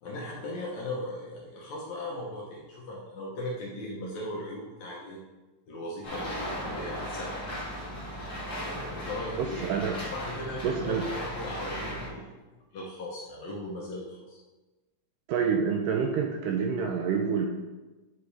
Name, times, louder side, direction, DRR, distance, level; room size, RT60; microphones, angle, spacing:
voice 1, 0.0-5.2 5.7-7.8 8.6-9.7 10.1-12.3 12.7-14.4, left 1 dB, 70° left, -3 dB, 1.8 m, -38 dB
sound 1, 6.0-12.1, equal, 40° left, 1.6 m, -37 dB
voice 2, 9.4-10.0 10.6-11.1 15.3-17.5, right 6 dB, 85° right, 3 dB, 1.9 m, -27 dB
8.0 x 5.0 x 3.4 m, 1.1 s
omnidirectional pair, 4.2 m